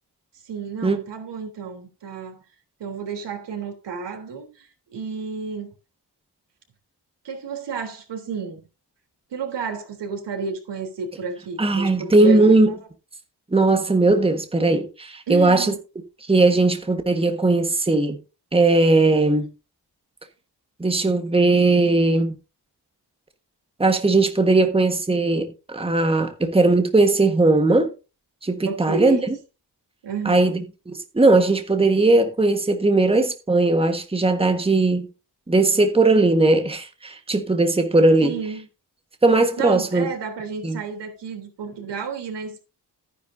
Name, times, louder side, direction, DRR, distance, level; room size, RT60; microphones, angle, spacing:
voice 1, 0.4-2.4 2.8-5.7 7.2-8.6 9.3-12.8 15.3-15.8 26.2-26.3 28.7-29.3 30.0-30.6 38.2-38.7 39.6-42.6, right 5 dB, 90° right, 3.6 m, -31 dB
voice 2, 11.6-12.7 13.5-15.7 16.3-18.2 18.5-19.5 20.8-22.3 23.8-27.9 28.4-29.2 30.2-35.1 35.5-38.3 39.2-40.1 40.6-40.8, right 2 dB, 15° right, 1.5 m, -18 dB
14.0 x 10.0 x 2.7 m
wide cardioid pair, 130°, 41 cm